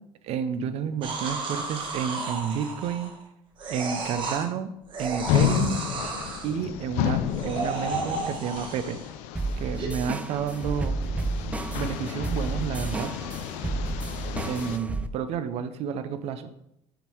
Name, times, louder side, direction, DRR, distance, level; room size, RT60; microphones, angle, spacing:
voice 1, 0.2-3.1 3.7-4.7 5.0-5.8 6.4-9.0 9.6-11.0 11.7-13.1 14.5-16.5, right 7 dB, 60° right, 11 dB, 0.7 m, -30 dB
sound 1, 1.0-3.2 3.6-4.5 4.9-6.5 7.2-9.1 9.8-9.9, right 3 dB, 45° right, 1.5 m, -33 dB
sound 2, 5.2-14.8, left 11 dB, 75° left, 0.5 m, -31 dB
sound 3, 9.3-15.1, right 3 dB, 10° right, 0.4 m, -32 dB
6.7 x 4.5 x 4.6 m, 0.80 s
supercardioid pair, 105°, 12 cm